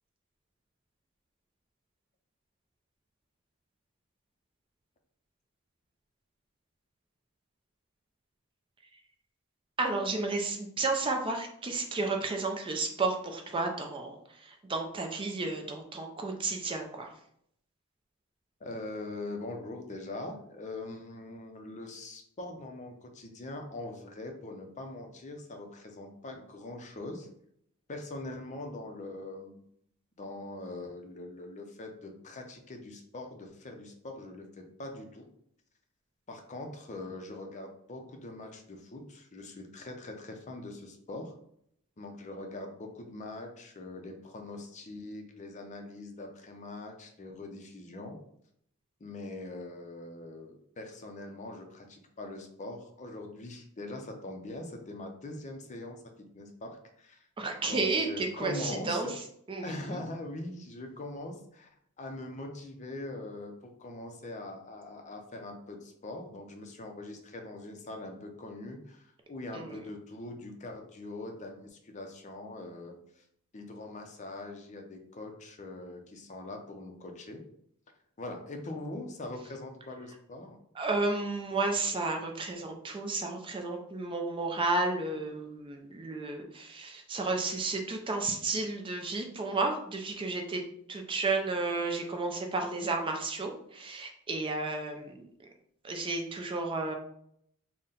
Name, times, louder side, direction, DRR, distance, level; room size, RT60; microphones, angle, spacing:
voice 1, 9.8-17.1 57.4-59.1 59.5-59.7 69.5-69.7 80.8-90.6 90.9-95.3 95.8-96.9, right 3 dB, 25° right, 3 dB, 0.4 m, -32 dB
voice 2, 18.6-27.3 27.9-29.6 30.2-35.3 36.3-41.3 42.0-48.2 49.0-57.3 57.6-59.1 59.6-73.2 73.5-77.4 78.2-80.6, left 2 dB, 35° left, 3 dB, 0.5 m, -42 dB
4.0 x 2.1 x 3.7 m, 0.70 s
head